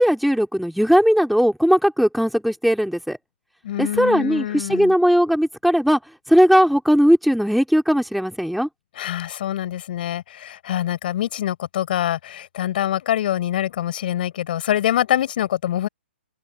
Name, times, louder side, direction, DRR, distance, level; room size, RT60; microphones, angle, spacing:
voice 1, 0.0-3.2 3.8-6.0 6.3-8.7, equal, ahead, 3.4 m, -18 dB
voice 2, 3.6-4.9 8.9-15.9, left 12 dB, 50° left, 7.0 m, -25 dB
hypercardioid pair, 135°, 6 cm